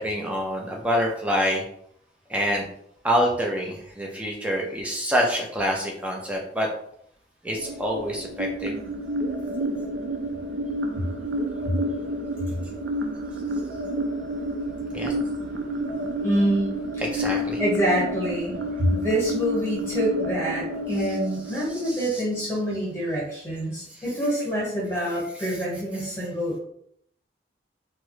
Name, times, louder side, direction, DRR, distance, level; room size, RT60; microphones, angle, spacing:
voice 1, 0.0-1.6 2.3-2.7 3.0-6.7 7.4-8.8 14.9-15.1 17.0-17.6 21.5-22.2 23.9-24.0 25.3-25.6, equal, 5° right, -1 dB, 0.5 m, -26 dB
sound 1, 7.6-22.5, equal, 75° right, 0.4 m, -30 dB
voice 2, 16.2-16.8 17.6-26.6, equal, 15° left, -6 dB, 1.3 m, -26 dB
3.4 x 2.0 x 3.1 m, 0.69 s
head